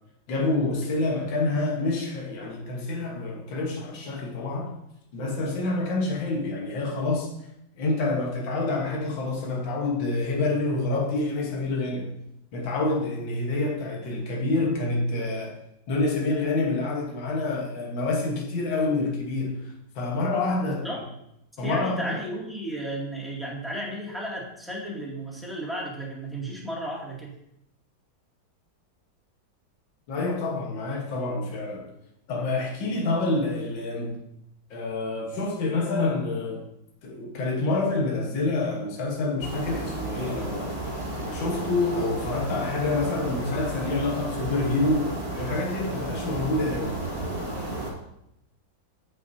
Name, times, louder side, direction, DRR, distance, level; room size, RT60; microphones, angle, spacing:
voice 1, 0.3-4.7 5.1-7.3 7.8-12.1 12.5-15.6 15.9-20.8 21.6-22.2 30.1-31.9 32.3-34.2 34.7-36.7 37.0-40.7 41.2-47.0, left 2 dB, 75° left, -1 dB, 2.0 m, -27 dB
voice 2, 20.6-21.0 21.6-27.3, right 1 dB, ahead, -5 dB, 2.0 m, -34 dB
sound 1, 39.4-47.9, right 2 dB, 30° right, 2.0 m, -33 dB
14.5 x 5.6 x 2.7 m, 0.80 s
omnidirectional pair, 2.1 m